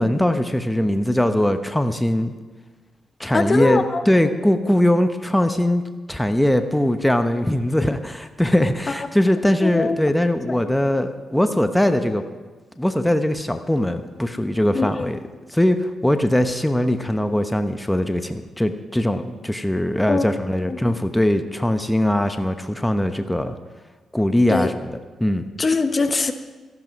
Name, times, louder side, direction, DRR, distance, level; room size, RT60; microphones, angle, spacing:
voice 1, 0.0-2.3 3.2-5.8 6.1-12.2 12.8-15.2 15.5-23.5 24.1-24.7 25.2-25.4, left 1 dB, 5° left, 8 dB, 0.9 m, -21 dB
voice 2, 3.3-4.0 8.9-9.0 9.6-10.2 10.5-10.6 14.7-15.1 20.1-20.4 20.7-20.8 24.5-24.7 25.6-26.3, left 3 dB, 35° left, 9 dB, 1.0 m, -22 dB
13.5 x 12.0 x 5.3 m, 1.4 s
supercardioid pair, 60°, 0 cm